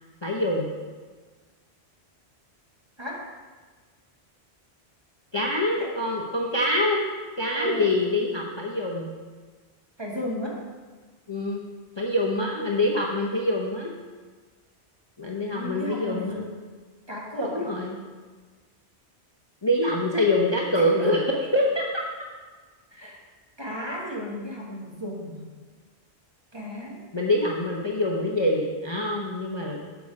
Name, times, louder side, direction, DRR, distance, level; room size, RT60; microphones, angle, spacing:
voice 1, 0.2-0.7 5.3-7.1 7.4-9.1 11.3-11.6 12.0-13.9 15.2-16.4 17.4-18.0 19.6-21.2 21.5-21.8 27.1-29.8, left 1 dB, 25° left, -2 dB, 0.8 m, -25 dB
voice 2, 7.5-7.9 10.0-10.6 15.6-16.5 17.1-17.7 20.8-21.1 22.9-23.2 23.6-25.4 26.5-27.0, equal, 25° right, -3 dB, 1.6 m, -33 dB
8.4 x 7.1 x 4.9 m, 1.4 s
omnidirectional pair, 1.1 m